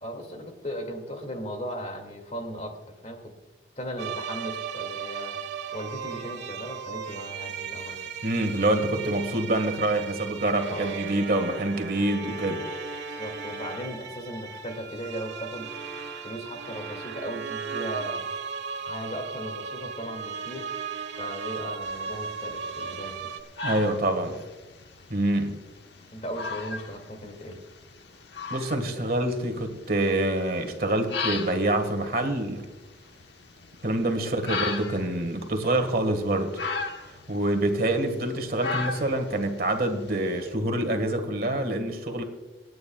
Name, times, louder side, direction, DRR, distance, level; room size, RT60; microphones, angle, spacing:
voice 1, 0.0-2.8 3.0-3.3 3.8-5.4 5.7-8.0 10.6-11.0 13.2-15.7 16.2-18.3 18.8-20.7 21.1-23.2 25.2-25.4 26.1-27.6, equal, 40° left, 3 dB, 2.4 m, -37 dB
sound 1, 4.0-23.4, right 6 dB, 80° right, 1.4 m, -36 dB
voice 2, 8.2-12.6 23.6-24.4 25.1-25.6 28.5-32.6 33.8-36.5 37.1-42.2, right 1 dB, 55° right, 6 dB, 1.7 m, -26 dB
sound 2, 21.8-40.5, left 4 dB, 75° left, 1.2 m, -38 dB
27.5 x 9.5 x 2.4 m, 1.2 s
head